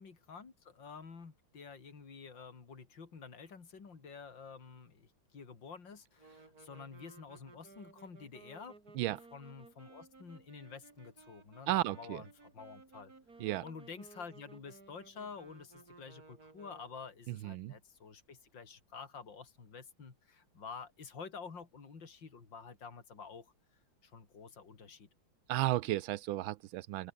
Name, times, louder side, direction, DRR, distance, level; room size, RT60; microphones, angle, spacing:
voice 1, 0.0-8.8 9.3-13.1 13.6-23.5 24.0-25.1, left 5 dB, 60° left, 3.9 m, -49 dB
sound 1, 6.2-17.2, right 3 dB, 45° right, 4.2 m, -58 dB
voice 2, 11.7-12.2 13.4-13.6 17.3-17.7 25.5-27.1, right 15 dB, 75° right, 1.3 m, -34 dB
open air
omnidirectional pair, 2.3 m